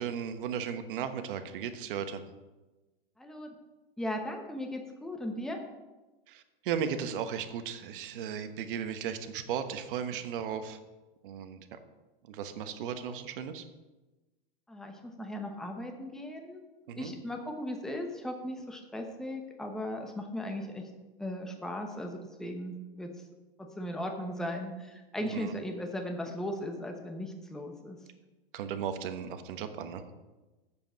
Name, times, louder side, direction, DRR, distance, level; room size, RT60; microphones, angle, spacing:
voice 1, 0.0-2.2 6.3-10.8 11.2-11.6 12.3-13.6 16.9-17.1 25.2-25.5 28.5-30.0, right 8 dB, 60° right, 9 dB, 1.2 m, -36 dB
voice 2, 3.2-3.5 4.0-5.6 14.7-16.7 17.0-20.9 21.2-23.1 23.6-28.0, left 1 dB, ahead, 3 dB, 0.9 m, -37 dB
7.6 x 6.9 x 7.9 m, 1.1 s
supercardioid pair, 145°, 30 cm